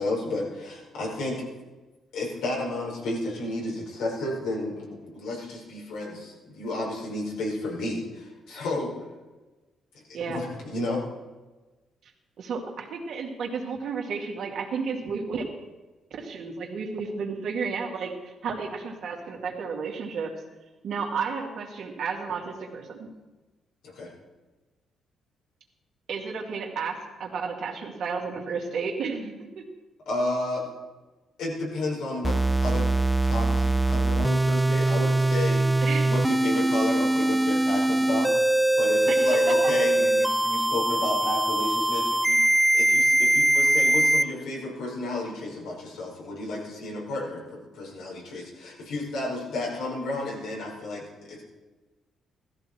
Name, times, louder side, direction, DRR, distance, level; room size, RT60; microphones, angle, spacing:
voice 1, 0.0-1.4 2.1-8.9 10.1-11.0 23.8-24.1 30.1-30.7 31.4-32.9 33.2-35.7 36.1-38.3 38.8-42.4 42.7-51.4, left 2 dB, 85° left, -3 dB, 5.2 m, -32 dB
voice 2, 12.4-15.4 16.1-20.3 20.8-23.1 26.1-29.6 35.8-36.1 39.1-39.4, right 5 dB, 70° right, 1 dB, 2.5 m, -32 dB
sound 1, 32.2-44.2, right 1 dB, 5° right, 0.5 m, -22 dB
16.0 x 14.0 x 4.6 m, 1.2 s
cardioid pair, 90°, 0 cm